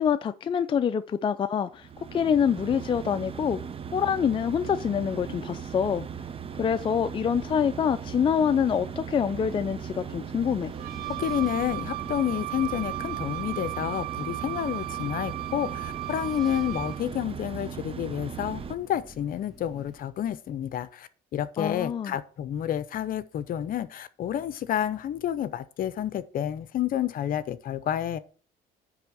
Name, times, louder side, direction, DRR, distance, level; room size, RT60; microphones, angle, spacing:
voice 1, 0.0-3.6 3.9-6.1 6.6-10.7 21.6-22.2, left 7 dB, 30° left, 0.4 m, -26 dB
sound 1, 1.7-18.8, right 7 dB, 35° right, 0.7 m, -38 dB
Wind, 9.3-20.0, equal, ahead, 1.7 m, -50 dB
Wind instrument woodwind instrument, 10.7-17.1, right 19 dB, 60° right, 0.5 m, -36 dB
voice 2, 11.2-28.2, left 10 dB, 55° left, 0.7 m, -30 dB
9.7 x 3.5 x 6.8 m
cardioid pair, 110°, 17 cm